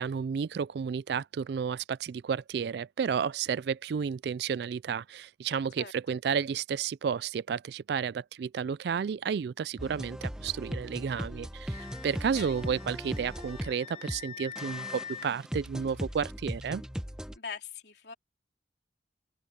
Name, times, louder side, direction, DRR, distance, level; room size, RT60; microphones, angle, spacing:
voice 1, 0.0-16.8, right 7 dB, 60° right, 0.3 m, -32 dB
voice 2, 5.8-6.2 12.3-12.6 17.4-18.1, left 6 dB, 60° left, 3.7 m, -42 dB
sound 1, 9.8-14.2 14.6-17.4, equal, 5° right, 1.1 m, -38 dB
Wind instrument woodwind instrument, 11.7-15.3, left 8 dB, 35° left, 5.1 m, -45 dB
open air
head